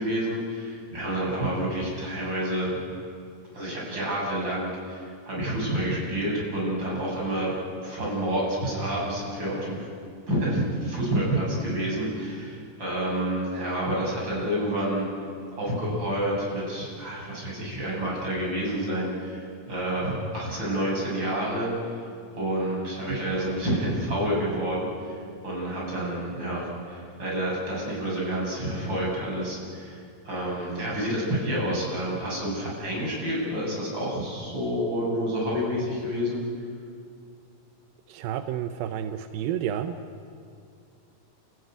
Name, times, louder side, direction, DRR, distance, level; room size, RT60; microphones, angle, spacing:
voice 1, 0.0-2.8 3.5-7.5 7.8-9.9 10.3-15.1 15.5-21.7 22.3-25.2 25.4-36.4, right 1 dB, 30° right, -4 dB, 8.4 m, -29 dB
voice 2, 38.1-40.0, right 10 dB, 90° right, 8 dB, 2.6 m, -30 dB
29.5 x 15.5 x 9.2 m, 2.3 s
omnidirectional pair, 4.0 m